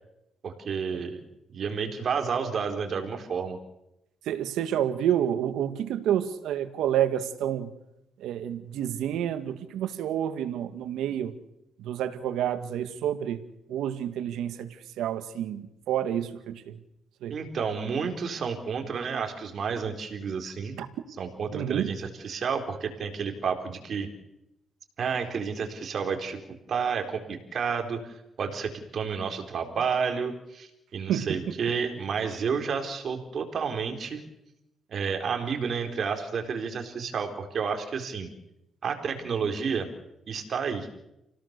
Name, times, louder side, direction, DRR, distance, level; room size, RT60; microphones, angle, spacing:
voice 1, 0.4-1.2 1.5-3.6 17.3-20.8 21.2-24.1 25.0-34.2 34.9-38.3 38.8-39.9 40.3-40.9, right 6 dB, 55° right, 5 dB, 4.3 m, -30 dB
voice 2, 4.3-7.7 8.2-11.3 11.8-13.4 13.7-16.8 17.2-17.3 20.8-20.9 21.5-21.9 31.1-31.5, right 10 dB, 85° right, 9 dB, 2.0 m, -29 dB
29.5 x 17.5 x 6.9 m, 0.85 s
cardioid pair, 90°, 0 cm